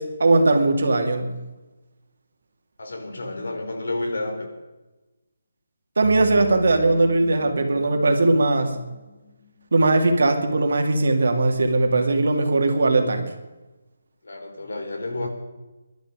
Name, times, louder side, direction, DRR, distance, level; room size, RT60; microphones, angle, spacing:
voice 1, 0.0-1.3 6.0-8.8 9.7-13.3, right 2 dB, 55° right, 5 dB, 2.5 m, -19 dB
voice 2, 2.8-4.5 14.2-15.3, left 2 dB, 80° left, 4 dB, 4.1 m, -30 dB
sound 1, 6.0-9.3, left 3 dB, 30° left, 2.0 m, -38 dB
21.0 x 12.0 x 5.1 m, 1.1 s
hypercardioid pair, 180°, 0 cm